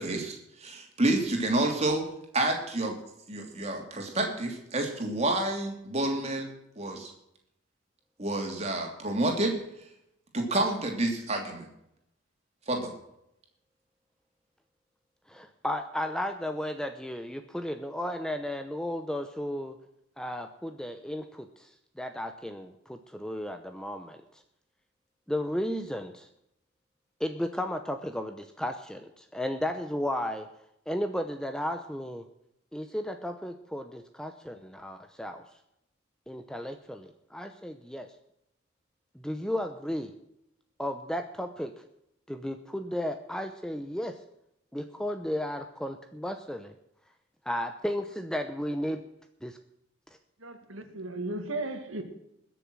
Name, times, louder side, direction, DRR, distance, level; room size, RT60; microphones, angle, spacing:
voice 1, 0.0-2.0 2.3-2.9 3.3-7.1 8.2-9.5 10.3-11.7 12.7-12.9, right 2 dB, 30° right, 2 dB, 2.9 m, -29 dB
voice 2, 15.3-19.8 20.2-21.7 22.0-24.4 25.3-26.3 27.2-30.5 30.9-32.3 32.7-35.4 36.3-38.1 39.1-40.1 40.8-41.7 42.3-44.2 44.7-46.7 47.5-49.0 49.4-49.6, left 1 dB, 5° left, 7 dB, 0.7 m, -34 dB
voice 3, 50.4-52.0, right 2 dB, 75° right, 6 dB, 2.1 m, -35 dB
21.0 x 7.0 x 6.2 m, 0.80 s
head